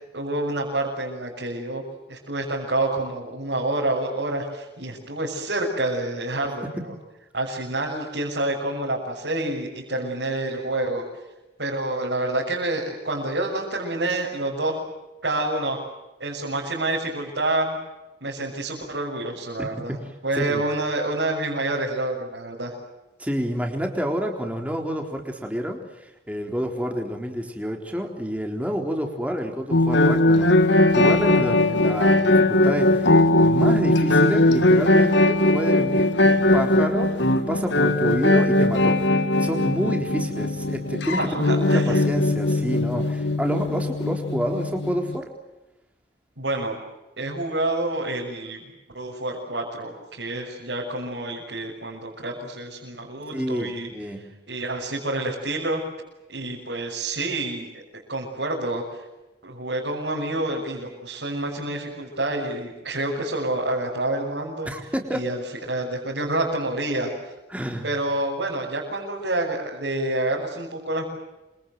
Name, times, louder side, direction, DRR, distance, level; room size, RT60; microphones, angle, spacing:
voice 1, 0.1-1.8 2.1-6.9 7.3-11.0 11.6-14.8 15.2-15.8 16.2-17.8 18.2-20.0 20.2-22.7 41.2-42.1 46.4-46.8 47.2-48.6 48.9-53.9 54.5-55.8 56.3-59.0 59.4-64.7 65.1-65.4 65.7-67.1 67.8-71.0, right 2 dB, 80° right, -4 dB, 6.7 m, -28 dB
voice 2, 23.2-30.5 30.9-33.1 33.4-39.0 39.4-41.3 41.5-45.3 53.3-54.2 64.6-65.3 67.5-67.9, equal, 10° right, 3 dB, 4.0 m, -28 dB
sound 1, 29.7-45.2, left 1 dB, 85° left, 1.8 m, -20 dB
28.5 x 25.5 x 7.8 m, 1.0 s
head